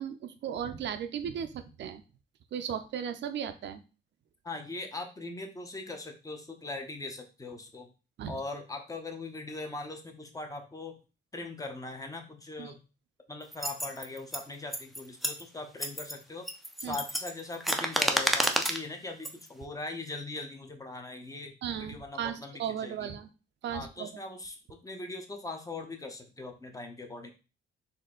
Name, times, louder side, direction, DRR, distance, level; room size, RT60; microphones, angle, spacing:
voice 1, 0.0-2.0 2.5-3.8 8.2-8.4 12.6-12.7 16.8-17.0 21.6-23.3 23.6-24.1, right 8 dB, 65° right, 9 dB, 0.6 m, -36 dB
voice 2, 4.4-7.9 8.3-10.9 11.3-12.8 13.3-16.4 16.8-23.1 23.7-27.3, left 2 dB, 15° left, 4 dB, 1.0 m, -40 dB
sound 1, 13.5-14.4 14.7-15.4 15.8-16.1 16.5-18.8 19.2-19.5, equal, ahead, 0.6 m, -29 dB
4.3 x 2.9 x 3.8 m, 0.32 s
cardioid pair, 90°, 20 cm